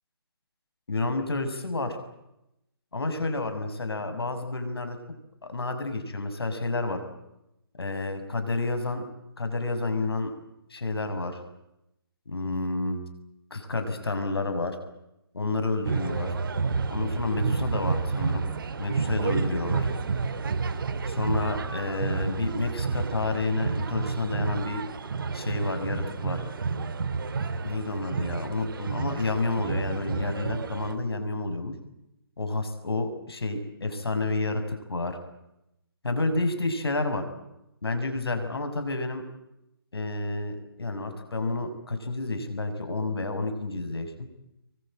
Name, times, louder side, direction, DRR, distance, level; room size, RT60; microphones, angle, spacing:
voice 1, 0.9-2.0 2.9-5.0 5.4-7.0 7.8-9.1 9.4-10.3 10.7-11.4 12.3-13.0 13.5-14.7 15.3-16.3 16.9-18.5 18.8-19.8 21.1-24.8 25.3-26.4 27.6-31.7 32.4-35.2 36.0-37.2 37.8-39.2 39.9-44.3, left 2 dB, 80° left, 8 dB, 6.4 m, -30 dB
sound 1, 15.8-31.0, right 4 dB, 60° right, 2.3 m, -30 dB
25.0 x 23.5 x 8.9 m, 0.87 s
hypercardioid pair, 150°, 13 cm